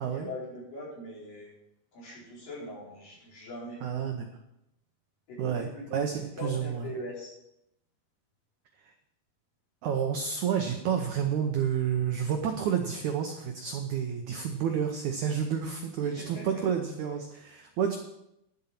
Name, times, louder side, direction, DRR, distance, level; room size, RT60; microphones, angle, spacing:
voice 1, 0.0-1.5 1.9-3.8 5.3-6.1 6.4-7.3 16.0-16.7, left 1 dB, 60° left, -6 dB, 5.9 m, -41 dB
voice 2, 3.8-4.3 5.4-6.9 9.8-18.0, right 8 dB, 80° right, 4 dB, 1.7 m, -30 dB
11.0 x 7.8 x 5.8 m, 0.82 s
omnidirectional pair, 4.5 m